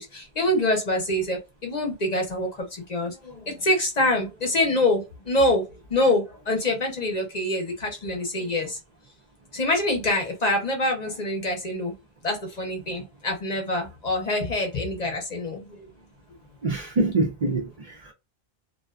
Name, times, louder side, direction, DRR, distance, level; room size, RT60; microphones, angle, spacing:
voice 1, 0.0-5.6 5.9-8.8 9.5-11.9 12.2-15.7, left 1 dB, 45° left, 0.7 m, -25 dB
voice 2, 16.6-18.1, right 2 dB, 45° right, 0.6 m, -25 dB
2.4 x 2.2 x 2.3 m
omnidirectional pair, 1.1 m